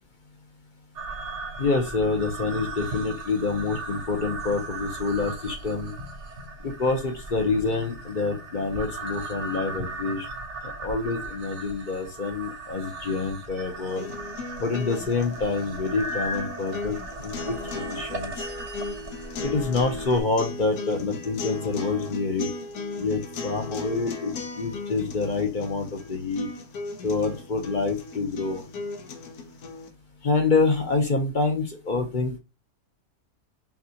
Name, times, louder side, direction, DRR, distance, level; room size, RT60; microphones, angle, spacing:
sound 1, 1.0-20.2, right 2 dB, 60° right, 1.0 m, -37 dB
voice 1, 1.6-5.9 6.6-10.3 10.8-14.1 14.6-18.3 19.4-22.5 23.0-26.5 27.0-28.6 30.2-32.4, left 3 dB, 40° left, 3 dB, 0.8 m, -27 dB
sound 2, 13.9-29.9, left 3 dB, 90° left, 1.3 m, -37 dB
5.9 x 2.4 x 2.8 m, 0.28 s
omnidirectional pair, 1.5 m